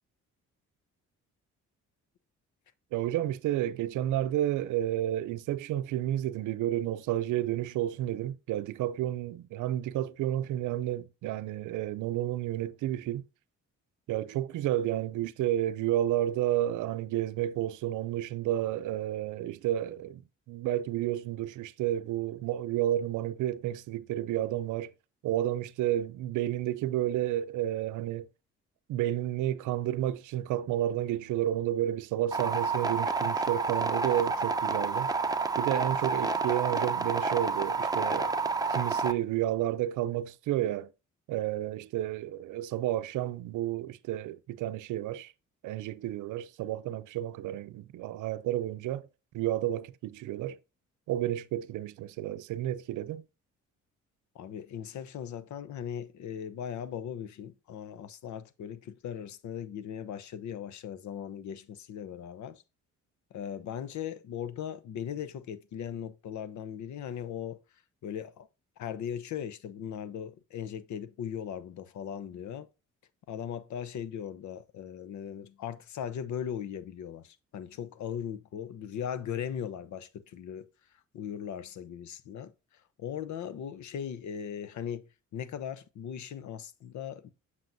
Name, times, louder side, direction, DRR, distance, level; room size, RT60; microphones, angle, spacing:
voice 1, 2.9-13.2 14.1-20.2 20.5-24.9 25.2-28.3 28.9-35.1 35.6-38.4 38.7-40.9 41.3-45.3 45.6-49.1 49.3-50.6 51.1-53.2, right 13 dB, 80° right, 0.5 m, -31 dB
sound 1, 32.3-39.1, right 4 dB, 10° right, 0.7 m, -29 dB
voice 2, 54.3-62.6 63.3-67.6 68.0-68.5 68.8-72.7 73.3-80.7 81.1-82.5 83.0-87.3, left 9 dB, 70° left, 0.8 m, -38 dB
7.6 x 6.0 x 2.6 m
cardioid pair, 90°, 30 cm